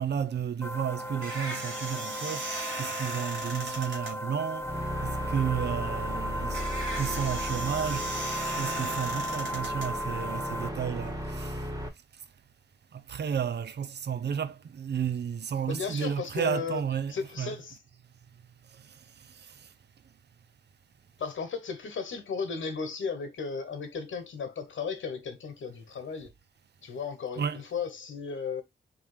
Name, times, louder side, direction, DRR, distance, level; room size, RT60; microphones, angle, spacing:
voice 1, 0.0-6.7 6.9-11.7 12.9-17.6 18.7-19.7 27.4-27.6, right 8 dB, 60° right, 0.6 m, -33 dB
sound 1, 0.6-10.7, equal, 15° left, 0.5 m, -36 dB
sound 2, 0.7-10.6, right 2 dB, 85° right, 1.8 m, -39 dB
sound 3, 4.6-11.9, equal, 15° right, 1.6 m, -36 dB
voice 2, 15.7-16.8 17.1-17.8 21.2-26.3 26.8-28.6, left 5 dB, 75° left, 1.2 m, -35 dB
3.6 x 2.8 x 4.8 m
cardioid pair, 55°, 20 cm